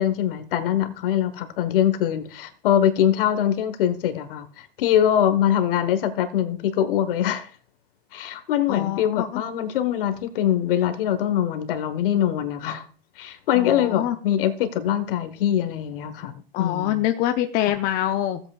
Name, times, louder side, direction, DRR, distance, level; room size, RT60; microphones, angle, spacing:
voice 1, 0.0-7.5 8.1-12.9 13.2-17.0 17.7-17.8, left 10 dB, 60° left, 11 dB, 1.3 m, -23 dB
voice 2, 8.7-9.4 13.5-14.2 16.5-18.4, left 12 dB, 30° left, 6 dB, 0.6 m, -25 dB
16.5 x 7.9 x 2.4 m, 0.42 s
hypercardioid pair, 125°, 31 cm